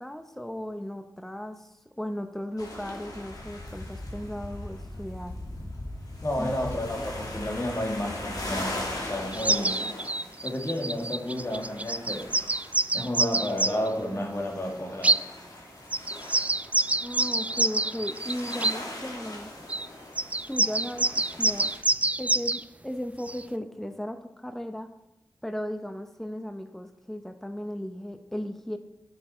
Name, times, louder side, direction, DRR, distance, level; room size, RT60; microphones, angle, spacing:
voice 1, 0.0-5.4 6.4-6.6 17.0-19.5 20.5-21.7 22.2-24.9 25.4-28.8, equal, 5° left, 7 dB, 0.8 m, -36 dB
sound 1, 2.6-21.8, left 1 dB, 70° left, 2.5 m, -40 dB
voice 2, 6.2-9.8 10.4-12.3 12.9-15.2, left 1 dB, 40° left, 0 dB, 2.4 m, -31 dB
sound 2, 9.3-13.9 15.0-15.2 15.9-18.8 19.7-19.9 20.2-22.6 23.3-23.4, right 2 dB, 20° right, 0.3 m, -26 dB
10.5 x 7.1 x 4.4 m, 0.92 s
cardioid pair, 50°, 7 cm